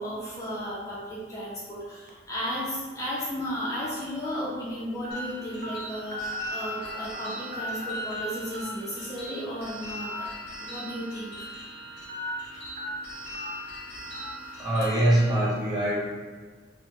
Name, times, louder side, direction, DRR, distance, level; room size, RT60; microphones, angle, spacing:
voice 1, 0.0-10.3 10.6-11.5, equal, 20° left, -8 dB, 0.4 m, -34 dB
sound 1, 2.1-2.3 3.0-3.1 4.2-4.4 5.0-5.2 5.6-5.7 6.1-7.3 7.5-8.2 8.5-8.7 9.9-10.2 10.6-10.7 12.1-12.3 12.8-12.9 13.3-13.5 14.1-14.3, left 2 dB, 50° right, 0.4 m, -37 dB
sound 2, 5.1-15.4, equal, 60° left, 0.7 m, -41 dB
voice 2, 14.6-16.1, right 1 dB, 25° right, -8 dB, 0.9 m, -23 dB
2.9 x 2.0 x 3.0 m, 1.4 s
head